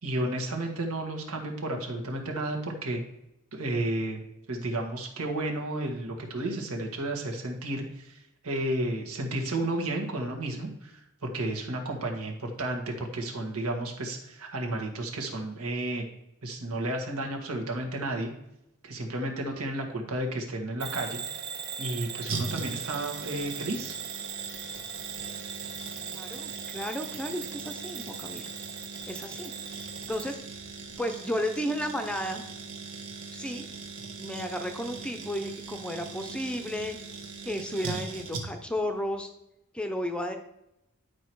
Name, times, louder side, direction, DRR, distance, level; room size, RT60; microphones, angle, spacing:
voice 1, 0.0-3.0 3.5-8.2 8.4-16.0 16.4-18.3 18.8-21.2 21.8-24.0, right 1 dB, 85° right, 2 dB, 1.7 m, -32 dB
Bell / Alarm, 20.8-30.3, right 7 dB, 45° right, 0.5 m, -39 dB
sound 1, 22.3-38.8 39.0-39.1, right 4 dB, 70° right, 1.5 m, -40 dB
voice 2, 26.1-28.5 29.1-30.4 31.0-32.4 33.3-33.7 34.2-37.0 37.4-39.3 39.7-40.4, equal, 5° left, 6 dB, 0.6 m, -33 dB
10.5 x 4.9 x 4.6 m, 0.87 s
head